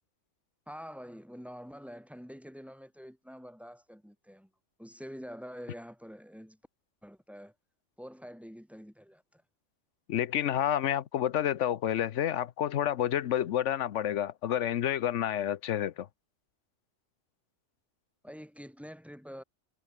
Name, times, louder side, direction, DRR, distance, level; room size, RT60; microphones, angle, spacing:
voice 1, 0.7-4.5 4.8-6.6 7.0-7.5 8.0-9.4 18.2-19.4, equal, ahead, 4.7 m, -46 dB
voice 2, 10.1-16.1, left 10 dB, 80° left, 1.1 m, -29 dB
omnidirectional pair, 1.2 m